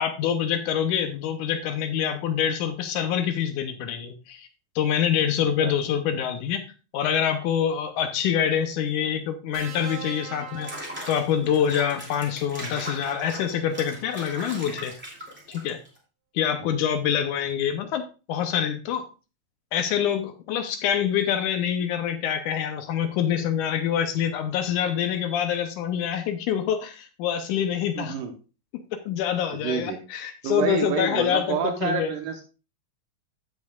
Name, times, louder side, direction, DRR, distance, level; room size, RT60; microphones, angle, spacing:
voice 1, 0.0-4.5 4.8-6.6 6.9-10.7 11.1-14.9 15.5-15.8 16.3-18.0 18.3-19.1 19.7-28.2 29.1-32.2, left 9 dB, 75° left, 8 dB, 2.1 m, -26 dB
sound 1, 9.5-11.8 13.1-13.3, right 9 dB, 65° right, 2.6 m, -41 dB
Water / Bathtub (filling or washing), 10.5-16.0, equal, 5° right, 1.9 m, -39 dB
voice 2, 28.0-28.3 29.5-30.0 30.4-32.4, right 7 dB, 80° right, 4 dB, 2.5 m, -28 dB
15.5 x 5.4 x 2.3 m, 0.32 s
omnidirectional pair, 3.8 m